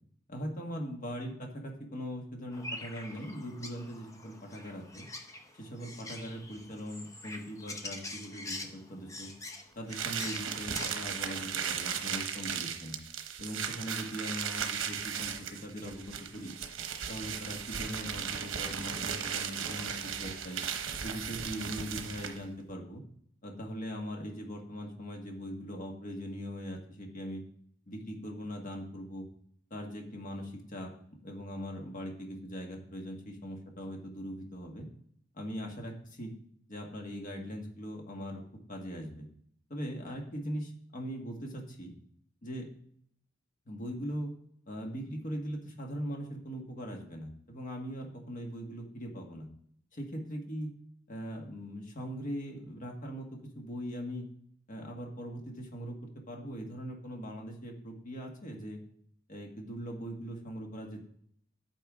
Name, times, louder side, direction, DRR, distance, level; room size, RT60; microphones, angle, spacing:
voice 1, 0.3-5.0 5.5-9.3 9.7-13.0 13.4-16.5 17.1-20.6 21.0-23.0 23.4-27.4 27.9-29.3 29.7-30.9 31.2-34.9 35.3-36.3 36.7-38.4 38.7-39.3 39.7-41.9 42.4-42.7 43.7-44.3 44.7-49.5 49.9-50.7 51.1-54.3 54.7-56.0 56.3-58.8 59.3-61.1, equal, 45° left, 1 dB, 1.6 m, -40 dB
sound 1, 2.5-10.9, left 2 dB, 15° left, 0.8 m, -44 dB
sound 2, 9.9-22.5, right 7 dB, 90° right, 0.9 m, -36 dB
9.9 x 8.8 x 3.6 m, 0.67 s
head